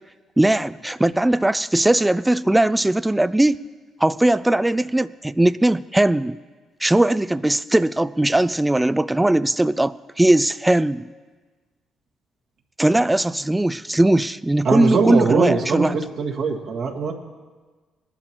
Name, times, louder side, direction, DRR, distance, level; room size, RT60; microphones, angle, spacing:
voice 1, 0.4-3.6 4.0-6.4 6.8-11.1 12.8-16.0, right 1 dB, 10° right, 16 dB, 0.4 m, -19 dB
voice 2, 14.6-17.1, right 5 dB, 65° right, -1 dB, 1.7 m, -22 dB
20.5 x 11.5 x 3.0 m, 1.4 s
hypercardioid pair, 50°, 0 cm